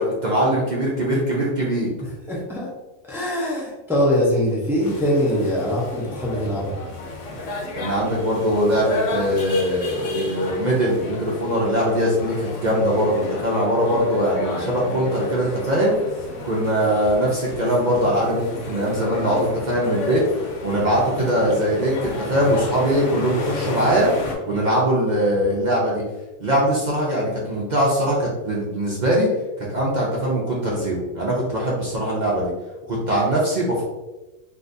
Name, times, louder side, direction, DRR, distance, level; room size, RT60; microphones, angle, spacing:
voice 1, 0.0-1.9 7.7-16.0 16.4-24.1 24.5-26.0 26.4-29.3 29.7-32.5 32.8-33.8, equal, 45° right, -4 dB, 0.6 m, -21 dB
voice 2, 2.3-2.7 3.0-6.8 16.8-16.9, equal, 5° right, -4 dB, 0.4 m, -22 dB
sound 1, 4.8-24.3, left 2 dB, 70° left, 1.0 m, -32 dB
3.6 x 2.5 x 2.6 m, 1.1 s
omnidirectional pair, 1.4 m